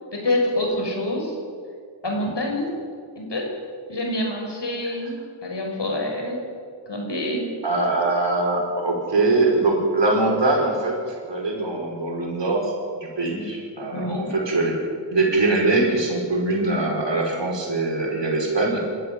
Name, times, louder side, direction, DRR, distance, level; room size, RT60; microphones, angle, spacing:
voice 1, 0.1-1.3 2.0-2.7 3.2-3.5 3.9-6.4 6.9-7.5 13.9-14.4, left 1 dB, 70° left, 1 dB, 6.0 m, -26 dB
voice 2, 7.6-14.8 15.1-18.9, right 2 dB, 75° right, 0 dB, 5.7 m, -22 dB
27.0 x 13.5 x 9.3 m, 2.1 s
wide cardioid pair, 60°, 43 cm